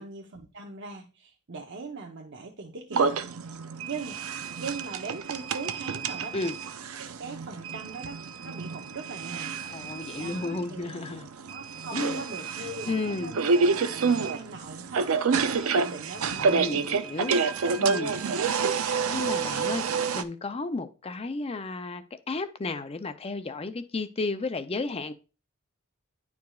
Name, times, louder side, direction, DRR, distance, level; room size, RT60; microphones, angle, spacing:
voice 1, 0.0-3.1 3.9-4.2 4.6-6.4 7.0-9.5 10.2-10.9 11.4-16.9 18.2-18.5, right 3 dB, 60° right, 2 dB, 0.8 m, -40 dB
sound 1, 2.9-20.2, right 5 dB, 90° right, 0.5 m, -28 dB
voice 2, 9.7-11.3 11.9-12.3 12.9-13.3 16.3-17.4 17.7-18.1 19.1-25.1, left 3 dB, 30° left, 10 dB, 0.5 m, -33 dB
10.0 x 4.7 x 2.4 m, 0.33 s
head